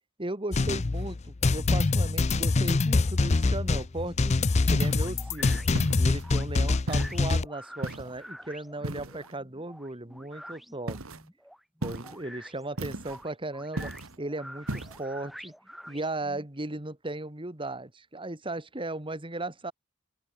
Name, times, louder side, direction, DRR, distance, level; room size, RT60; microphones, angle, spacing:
voice 1, 0.2-4.4 4.7-5.6 6.0-11.0 11.8-13.9 14.2-15.5 15.9-19.7, right 2 dB, 25° right, 2.1 m, -36 dB
sound 1, 0.5-7.5, left 3 dB, 30° left, 0.5 m, -25 dB
sound 2, 4.8-5.2 5.7-6.3 6.9-7.3 7.8-8.2 8.8-9.3 10.9-11.2 11.8-12.2 12.8-13.2 13.8-14.2 14.7-15.0, right 2 dB, 80° right, 2.0 m, -36 dB
sound 3, 5.0-16.5, equal, ahead, 2.1 m, -47 dB
open air
head